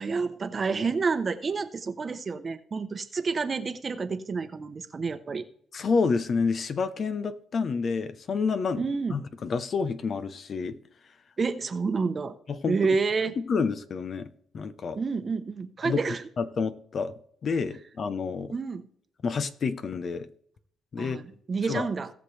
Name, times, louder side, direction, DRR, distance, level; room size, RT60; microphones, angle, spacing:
voice 1, 0.0-5.4 8.8-9.2 11.4-12.3 12.7-13.4 15.0-16.2 18.5-18.9 21.0-22.1, right 4 dB, 35° right, 0.9 m, -29 dB
voice 2, 5.7-8.8 9.1-10.8 12.5-12.8 13.4-14.3 14.5-15.0 15.8-16.0 16.4-17.1 17.4-18.5 19.2-20.3 20.9-21.2 21.6-21.9, left 5 dB, 50° left, 0.8 m, -29 dB
17.5 x 6.3 x 3.3 m
cardioid pair, 90°, 0 cm